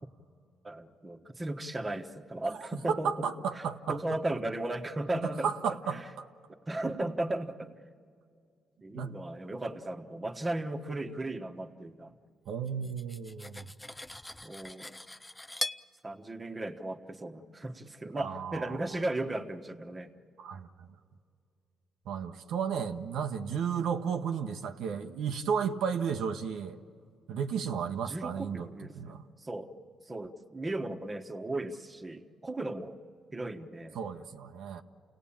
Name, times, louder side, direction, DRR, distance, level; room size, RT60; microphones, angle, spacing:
voice 1, 0.6-3.3 3.5-5.5 5.9-6.0 6.5-7.8 8.8-12.1 14.4-14.9 16.0-20.1 28.1-29.7 30.1-33.0 33.3-34.0, right 2 dB, 20° right, 6 dB, 1.3 m, -36 dB
voice 2, 2.6-4.0 5.2-6.3 8.9-9.2 12.5-13.6 18.1-18.8 20.4-20.9 22.1-26.8 27.3-29.2 33.9-34.8, right 7 dB, 80° right, 5 dB, 1.0 m, -33 dB
Cutlery silverware, 12.7-15.9, left 1 dB, 10° left, 0.5 m, -40 dB
29.0 x 18.0 x 8.8 m, 2.3 s
cardioid pair, 90°, 0 cm